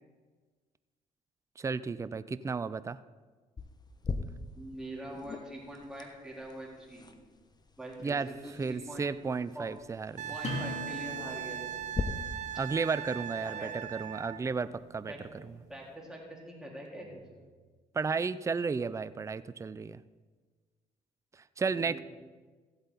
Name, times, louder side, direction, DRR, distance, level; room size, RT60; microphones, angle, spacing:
voice 1, 1.6-3.0 8.0-8.3 8.6-10.3 12.5-15.1 17.9-20.0 21.6-22.0, right 5 dB, 20° right, 15 dB, 0.4 m, -33 dB
sound 1, 3.6-12.0, left 4 dB, 30° left, 1.0 m, -43 dB
voice 2, 4.6-7.1 7.8-9.7 10.3-11.8 13.4-13.7 15.1-15.4 15.7-17.2 21.7-22.0, right 1 dB, 5° right, -4 dB, 3.9 m, -44 dB
Wind instrument woodwind instrument, 10.2-14.4 17.1-17.2, right 10 dB, 55° right, 0.7 m, -39 dB
sound 2, 10.4-15.8, left 2 dB, 50° left, 2.9 m, -44 dB
15.5 x 7.9 x 4.1 m, 1.4 s
supercardioid pair, 70°, 14 cm